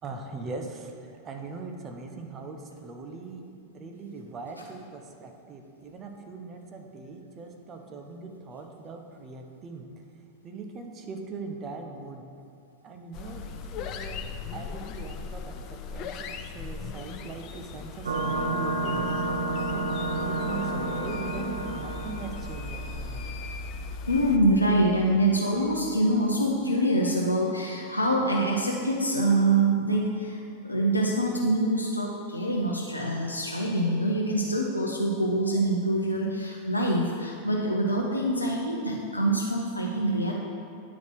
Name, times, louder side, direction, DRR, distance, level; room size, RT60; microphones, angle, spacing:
voice 1, 0.0-10.0 10.4-12.3 12.8-19.2 19.7-23.4, right 4 dB, 30° right, 4 dB, 0.7 m, -41 dB
sound 1, 13.1-24.4, left 6 dB, 40° left, 0.4 m, -39 dB
sound 2, 18.1-23.3, right 2 dB, 70° right, 0.5 m, -30 dB
sound 3, 18.8-26.3, equal, 20° left, 1.0 m, -42 dB
voice 2, 24.1-40.3, right 1 dB, 85° left, -2 dB, 0.6 m, -25 dB
9.5 x 4.0 x 4.5 m, 2.4 s
figure-of-eight pair, 90°, 0 cm